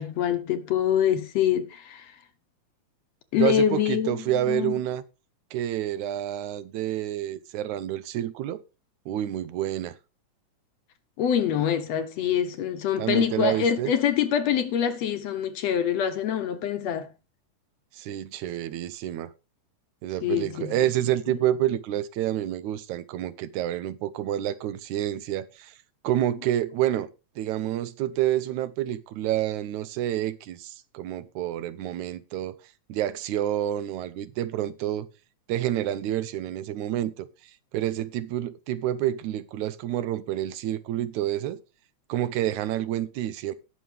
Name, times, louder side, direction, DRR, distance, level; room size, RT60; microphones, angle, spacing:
voice 1, 0.0-2.1 3.3-4.2 4.5-4.7 11.2-17.1 20.2-20.7, left 9 dB, 70° left, 1.9 m, -25 dB
voice 2, 3.4-5.0 5.5-8.6 9.1-10.0 13.0-13.9 17.9-19.3 20.0-25.7 26.0-27.1 27.4-32.6 32.9-35.1 35.5-37.3 37.7-41.6 42.1-43.5, right 12 dB, 80° right, 2.1 m, -28 dB
18.5 x 6.3 x 3.4 m
omnidirectional pair, 3.4 m